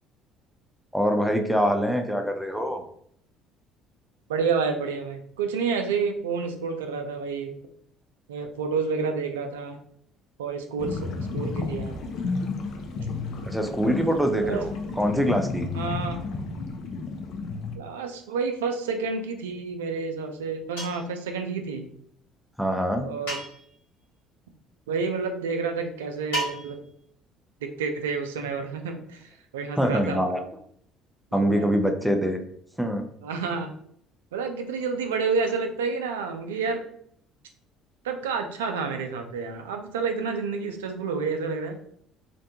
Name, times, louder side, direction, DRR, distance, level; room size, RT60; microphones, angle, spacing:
voice 1, 0.9-2.8 13.4-14.7 15.0-15.7 22.6-23.1 29.8-30.4 31.3-32.4 32.8-33.0, equal, ahead, 5 dB, 0.5 m, -24 dB
voice 2, 4.3-7.5 8.3-9.8 10.4-11.9 14.4-14.7 15.7-16.3 17.8-21.9 23.0-23.4 24.9-26.8 27.6-30.2 31.3-31.7 33.2-33.7 34.3-36.9 38.0-41.8, right 5 dB, 85° right, 5 dB, 0.3 m, -29 dB
sound 1, 10.8-17.8, left 4 dB, 60° left, 0.4 m, -32 dB
sound 2, 20.8-21.2 23.3-23.8 26.3-26.9, right 1 dB, 80° left, 1.1 m, -33 dB
2.5 x 2.2 x 2.7 m, 0.65 s
hypercardioid pair, 60°, 0 cm